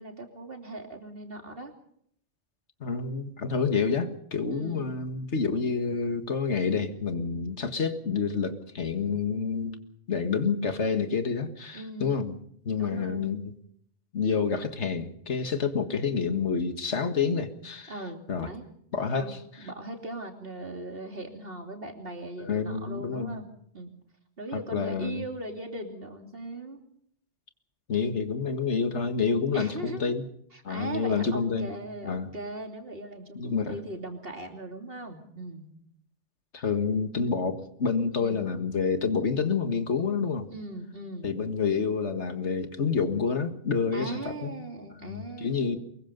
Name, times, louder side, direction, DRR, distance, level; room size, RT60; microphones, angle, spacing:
voice 1, 0.0-1.7 4.5-5.0 11.7-12.2 12.8-13.3 17.9-18.7 19.1-23.5 23.7-23.9 24.4-26.8 29.5-30.2 30.5-35.7 38.2-38.5 40.5-41.3 43.9-45.8, right 2 dB, 55° right, 3 dB, 3.3 m, -39 dB
voice 2, 2.8-9.8 10.1-12.4 12.6-13.5 14.1-17.9 18.3-18.5 18.9-19.4 22.4-23.4 24.5-25.2 27.9-30.2 30.6-31.7 32.0-32.3 33.4-33.8 36.5-40.5 41.2-44.5 45.0-45.8, left 5 dB, 90° left, 8 dB, 2.0 m, -28 dB
23.5 x 22.0 x 5.3 m, 0.67 s
omnidirectional pair, 1.2 m